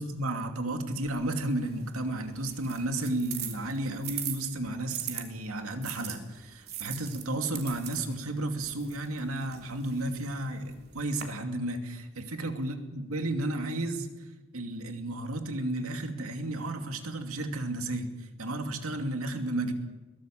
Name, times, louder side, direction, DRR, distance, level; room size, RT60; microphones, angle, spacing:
voice 1, 0.0-14.1 14.5-19.7, right 1 dB, 90° right, 5 dB, 2.6 m, -33 dB
sound 1, 1.1-5.2 5.8-11.2, right 10 dB, 45° right, 3.1 m, -42 dB
22.5 x 17.5 x 7.7 m, 1.1 s
head